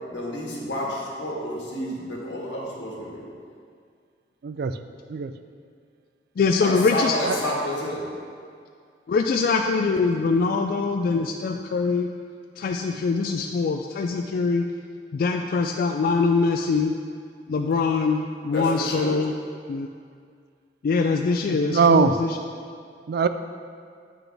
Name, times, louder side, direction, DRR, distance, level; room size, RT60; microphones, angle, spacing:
voice 1, 0.1-3.2 6.6-8.1 18.5-19.2, left 1 dB, 90° left, -4 dB, 1.6 m, -29 dB
voice 2, 4.4-4.8 5.1-5.3 7.2-7.4 21.5-22.2 23.1-23.3, right 5 dB, 60° right, 10 dB, 0.3 m, -21 dB
voice 3, 6.4-7.2 9.1-12.1 12.6-14.7 15.1-16.9 17.5-19.3 19.7-19.9 20.8-22.4, left 4 dB, 55° left, 4 dB, 0.3 m, -23 dB
8.4 x 6.0 x 3.4 m, 2.2 s
head